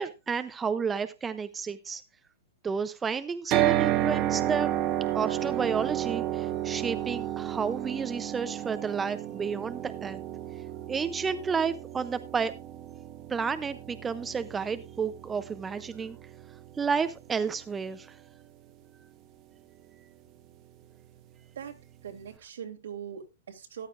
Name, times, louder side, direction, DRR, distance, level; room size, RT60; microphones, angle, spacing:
voice 1, 0.0-2.0 2.6-4.7 5.1-10.2 10.9-12.5 13.3-16.2 16.8-18.2, right 6 dB, 10° right, 12 dB, 0.5 m, -31 dB
sound 1, 3.5-17.6, right 13 dB, 30° right, 1.1 m, -32 dB
voice 2, 22.0-23.9, right 8 dB, 85° right, 5 dB, 2.7 m, -41 dB
14.0 x 11.0 x 2.5 m, 0.25 s
hypercardioid pair, 155°, 0 cm